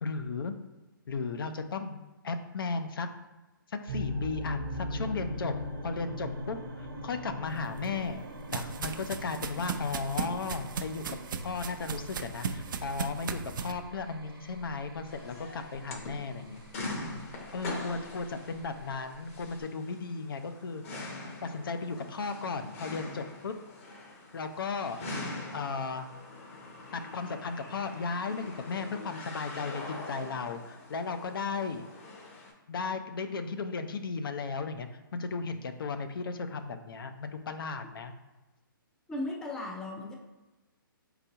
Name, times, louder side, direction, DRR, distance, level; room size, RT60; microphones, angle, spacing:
voice 1, 0.0-0.6 1.1-2.0 2.2-3.1 3.7-5.5 5.8-8.2 8.5-11.2 11.4-16.6 17.5-21.1 21.4-23.5 24.3-25.0 25.5-26.1 26.9-31.9 32.7-38.1, left 4 dB, 70° left, 8 dB, 0.5 m, -35 dB
sound 1, 3.9-19.6, equal, 80° right, 0.9 m, -41 dB
sound 2, 7.6-13.7, right 5 dB, 60° right, 0.5 m, -37 dB
sound 3, 15.1-32.5, left 2 dB, 40° left, 0.8 m, -43 dB
voice 2, 39.1-40.1, left 2 dB, 5° left, 0 dB, 0.4 m, -36 dB
4.4 x 3.9 x 2.8 m, 1.1 s
hypercardioid pair, 155°, 12 cm